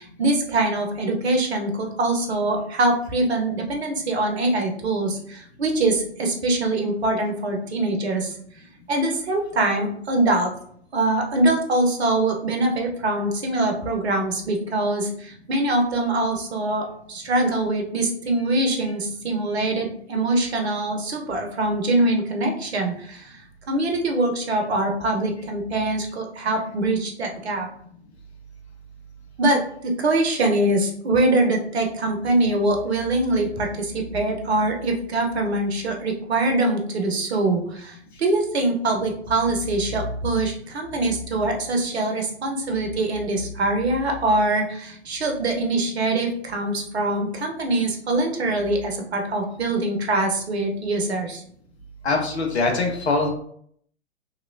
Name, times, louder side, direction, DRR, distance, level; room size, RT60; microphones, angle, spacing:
voice 1, 0.0-8.3 8.9-10.5 10.9-23.4 23.7-27.7 29.4-51.4, right 2 dB, 75° right, 3 dB, 0.8 m, -23 dB
voice 2, 52.0-53.3, left 3 dB, 75° left, 2 dB, 0.9 m, -22 dB
3.0 x 2.8 x 2.6 m, 0.64 s
figure-of-eight pair, 105°, 33 cm